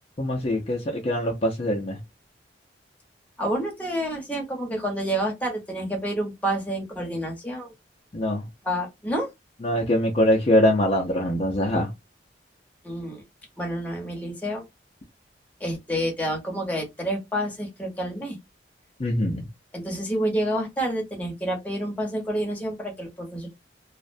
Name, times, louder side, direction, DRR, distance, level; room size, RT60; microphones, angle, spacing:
voice 1, 0.2-2.0 8.1-8.4 9.6-11.9 19.0-19.5, left 1 dB, 35° left, 0.4 m, -23 dB
voice 2, 3.4-7.7 8.6-9.3 12.8-13.2 13.6-14.6 15.6-18.4 19.7-23.6, right 1 dB, 10° left, 0.8 m, -28 dB
2.4 x 2.1 x 2.5 m
head